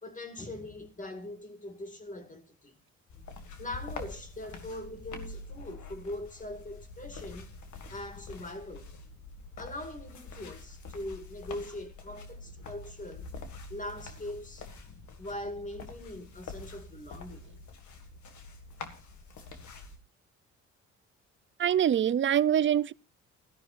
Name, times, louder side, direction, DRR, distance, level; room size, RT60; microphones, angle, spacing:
voice 1, 0.0-2.7 3.6-8.9 9.6-13.3 13.7-14.7 15.2-17.5, left 1 dB, 25° left, 2.2 m, -41 dB
sound 1, 3.1-20.0, left 3 dB, 70° left, 2.1 m, -46 dB
voice 2, 21.6-22.9, right 10 dB, 40° right, 0.5 m, -24 dB
17.0 x 13.5 x 2.5 m
cardioid pair, 90°, 30 cm